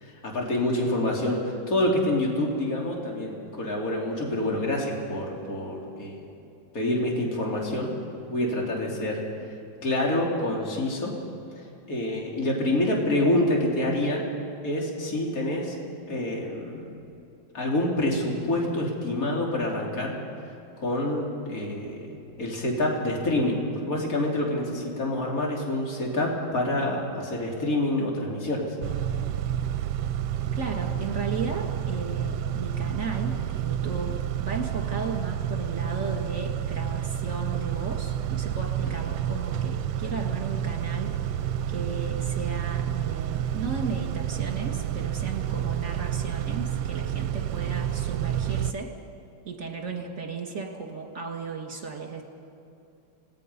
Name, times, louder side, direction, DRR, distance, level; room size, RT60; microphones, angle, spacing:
voice 1, 0.0-6.3 6.7-7.9 8.3-9.2 9.8-11.1 11.9-14.2 14.6-15.8 16.1-16.9 17.5-20.2 20.8-28.6, left 1 dB, 45° left, -2 dB, 3.3 m, -27 dB
Car / Idling / Accelerating revving vroom, 28.8-48.7, right 10 dB, 80° right, 1.4 m, -29 dB
voice 2, 30.5-41.1 41.7-48.9 49.4-52.2, right 4 dB, 45° right, 2 dB, 2.7 m, -35 dB
27.0 x 18.0 x 5.5 m, 2.7 s
omnidirectional pair, 2.1 m